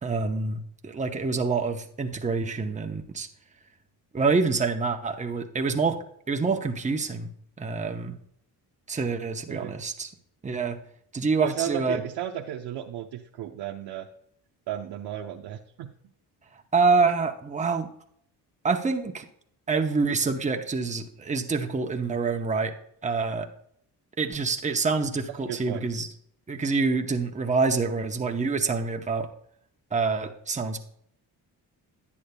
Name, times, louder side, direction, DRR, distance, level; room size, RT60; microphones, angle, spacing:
voice 1, 0.0-3.3 4.1-6.0 6.3-7.3 7.6-8.2 8.9-10.1 10.4-10.8 11.1-12.0 16.7-17.9 18.6-19.3 19.7-22.7 23.0-23.5 24.2-26.1 26.5-29.3 29.9-30.8, right 4 dB, 20° right, 4 dB, 0.8 m, -26 dB
voice 2, 11.4-14.1 14.7-15.9 25.5-25.9, right 10 dB, 75° right, 0 dB, 0.8 m, -34 dB
10.5 x 8.4 x 2.2 m, 0.67 s
cardioid pair, 90°, 40 cm